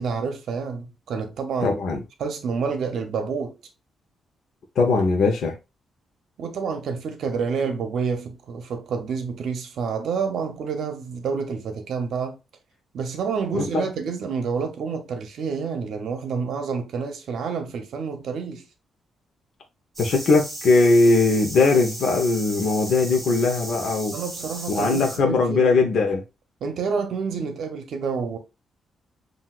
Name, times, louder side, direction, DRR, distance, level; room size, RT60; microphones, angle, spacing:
voice 1, 0.0-1.8 2.2-3.6 6.4-12.4 12.9-18.7 24.1-25.7 26.6-28.4, right 5 dB, 70° right, 0.8 m, -28 dB
voice 2, 1.6-2.0 4.8-5.5 13.5-13.8 20.0-24.1 24.7-26.2, left 3 dB, 65° left, 0.9 m, -20 dB
sound 1, 19.9-25.2, right 1 dB, 25° right, 2.4 m, -36 dB
7.6 x 2.7 x 2.4 m
cardioid pair, 125°, 0 cm